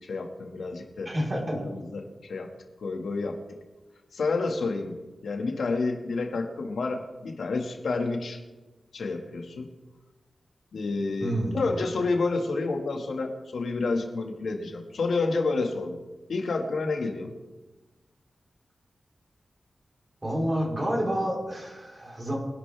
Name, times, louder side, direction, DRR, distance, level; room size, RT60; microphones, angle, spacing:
voice 1, 0.1-1.1 1.5-2.5 2.8-3.4 4.1-4.9 5.2-8.4 8.9-9.7 10.7-16.0 16.3-17.3, left 3 dB, 85° left, 2 dB, 2.0 m, -29 dB
voice 2, 1.0-1.6 11.2-11.6 20.2-22.4, equal, 30° right, -2 dB, 4.5 m, -28 dB
25.0 x 11.5 x 3.5 m, 1.2 s
wide cardioid pair, 130°, 0 cm